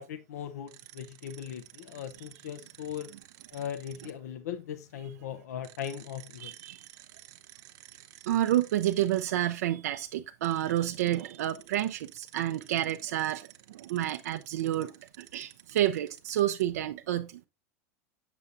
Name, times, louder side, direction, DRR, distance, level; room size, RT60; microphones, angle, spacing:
voice 1, 0.0-3.1 3.5-6.5, left 9 dB, 75° left, 0.6 m, -39 dB
sound 1, 0.7-4.1 5.6-9.3 10.4-16.7, right 14 dB, 50° right, 0.8 m, -53 dB
voice 2, 6.4-6.9 8.3-14.9 15.2-17.4, right 13 dB, 75° right, 0.4 m, -29 dB
6.9 x 6.8 x 2.5 m
hypercardioid pair, 100°, 9 cm